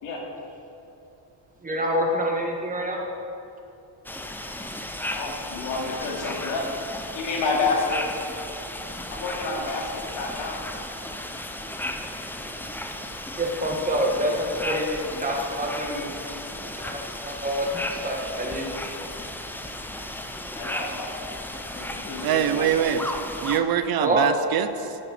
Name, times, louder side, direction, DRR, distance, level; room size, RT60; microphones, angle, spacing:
voice 1, 1.6-3.0 13.3-16.1 16.8-18.7 24.0-24.2, equal, 20° right, 0 dB, 1.4 m, -26 dB
sound 1, 4.0-23.6, left 1 dB, 5° left, 0.4 m, -35 dB
voice 2, 5.1-6.6 7.1-8.2 9.1-9.9 10.2-10.6 20.6-21.2 21.7-22.7, left 3 dB, 90° left, -1 dB, 2.6 m, -29 dB
voice 3, 22.2-23.0 23.4-25.0, right 9 dB, 55° right, 11 dB, 0.6 m, -23 dB
10.0 x 9.8 x 6.1 m, 2.8 s
cardioid pair, 175°, 44 cm